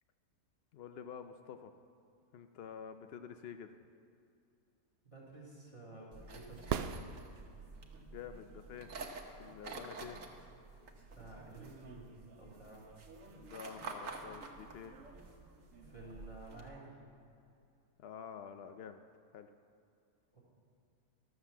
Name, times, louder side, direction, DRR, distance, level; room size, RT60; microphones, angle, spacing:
voice 1, 0.7-1.7 2.3-3.7 8.0-8.9 9.4-10.2 13.3-14.9 18.0-19.0 19.3-19.5, left 7 dB, 75° left, 8 dB, 0.5 m, -48 dB
voice 2, 5.0-7.1 11.1-12.9 15.8-17.0 20.3-20.4, right 2 dB, 20° left, -5 dB, 3.0 m, -52 dB
sound 1, 6.1-16.7, right 3 dB, 60° right, 1.5 m, -50 dB
sound 2, 6.7-7.8 11.7-11.8, right 8 dB, 75° right, 0.5 m, -38 dB
12.5 x 7.7 x 7.1 m, 2.6 s
omnidirectional pair, 1.6 m